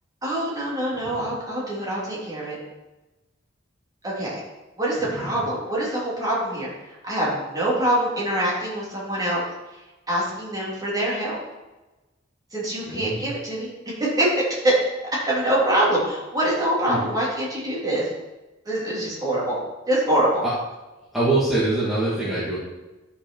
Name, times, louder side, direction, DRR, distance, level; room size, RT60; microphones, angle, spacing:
voice 1, 0.2-2.6 4.0-4.4 4.8-6.7 7.0-9.4 10.1-11.4 12.5-13.7 14.0-14.7 15.3-18.1 18.6-19.6 19.9-20.5, right 1 dB, 20° right, -7 dB, 3.4 m, -24 dB
voice 2, 12.9-13.2 16.9-17.0 21.1-22.6, right 2 dB, ahead, -10 dB, 2.1 m, -23 dB
12.0 x 5.5 x 4.7 m, 1.1 s
head